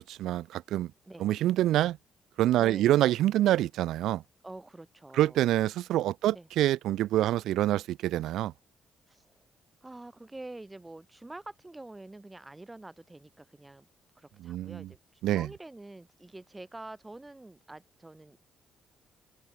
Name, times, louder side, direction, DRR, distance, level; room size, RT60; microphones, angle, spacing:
voice 1, 0.0-0.9 1.2-2.0 2.4-4.2 5.1-8.5 14.4-14.9 15.2-15.5, right 14 dB, 85° right, 0.3 m, -26 dB
voice 2, 2.6-3.0 4.4-5.4 6.3-6.5 9.1-9.3 9.8-13.9 14.2-18.4, right 2 dB, 15° right, 4.3 m, -46 dB
cardioid pair, 90°, 0 cm